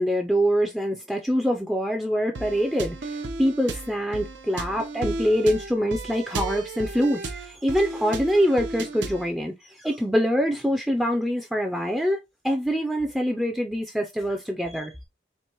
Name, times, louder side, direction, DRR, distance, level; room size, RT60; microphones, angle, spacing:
voice 1, 0.0-14.9, equal, ahead, 0.4 m, -25 dB
sound 1, 2.4-9.3, right 3 dB, 90° right, 0.6 m, -34 dB
4.5 x 2.5 x 2.9 m
head